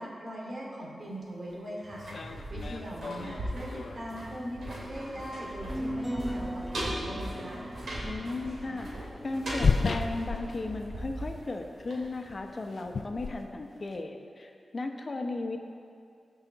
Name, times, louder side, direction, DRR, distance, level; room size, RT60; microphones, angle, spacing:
voice 1, 0.0-2.0 2.5-7.6, equal, 50° right, -3 dB, 2.7 m, -40 dB
sound 1, 1.5-1.6 2.0-4.0 5.1-5.2 7.0-7.3 7.6-7.7 9.2-11.1 11.3-11.7 12.0-14.0, left 4 dB, 65° left, 0.5 m, -33 dB
sound 2, 1.8-12.6 12.9-13.0, right 1 dB, 80° right, 2.7 m, -39 dB
sound 3, 5.7-10.2, equal, 5° left, 0.9 m, -39 dB
voice 2, 8.0-15.6, left 2 dB, 45° left, 4 dB, 1.0 m, -36 dB
16.0 x 5.8 x 4.1 m, 2.3 s
cardioid pair, 75°, 0 cm